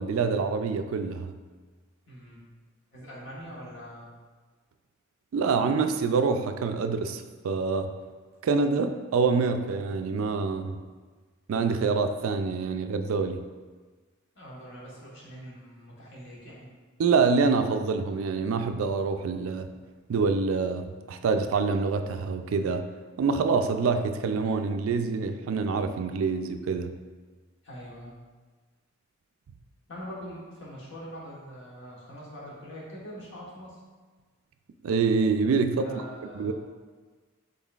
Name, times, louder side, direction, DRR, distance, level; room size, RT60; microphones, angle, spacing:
voice 1, 0.0-1.3 5.3-7.9 8.4-10.8 11.5-13.4 17.0-19.7 20.1-22.9 23.2-26.9 34.8-35.9 36.4-36.5, right 4 dB, 80° right, 8 dB, 0.3 m, -26 dB
voice 2, 2.1-2.4 2.9-4.1 14.3-16.7 27.6-28.1 29.9-33.8 35.8-36.5, equal, 60° left, -5 dB, 1.3 m, -43 dB
5.5 x 4.0 x 2.4 m, 1.4 s
head